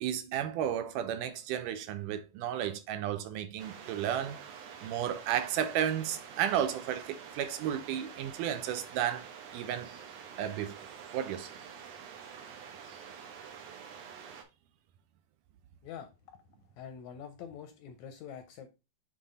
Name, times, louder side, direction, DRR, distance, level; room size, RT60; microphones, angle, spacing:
voice 1, 0.0-4.4 4.8-9.3 9.5-9.9 10.4-10.8 11.1-11.5, right 10 dB, 85° right, 2.2 m, -33 dB
sound 1, 3.6-14.4, right 7 dB, 65° right, 1.9 m, -47 dB
voice 2, 15.8-16.4 16.8-18.7, left 8 dB, 75° left, 1.8 m, -46 dB
7.3 x 3.4 x 3.7 m
omnidirectional pair, 3.8 m